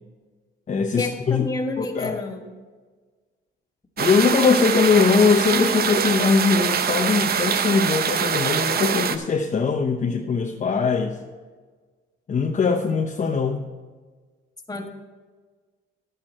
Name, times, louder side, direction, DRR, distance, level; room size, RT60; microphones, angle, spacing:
voice 1, 0.7-1.5 1.8-2.2 4.0-11.2 12.3-13.6, left 5 dB, 40° left, 2 dB, 0.9 m, -21 dB
voice 2, 1.4-2.5 14.7-14.9, left 3 dB, 20° left, 2 dB, 1.6 m, -29 dB
sound 1, 4.0-9.2, right 7 dB, 50° right, 0.7 m, -24 dB
10.5 x 9.0 x 4.4 m, 1.4 s
cardioid pair, 90°, 20 cm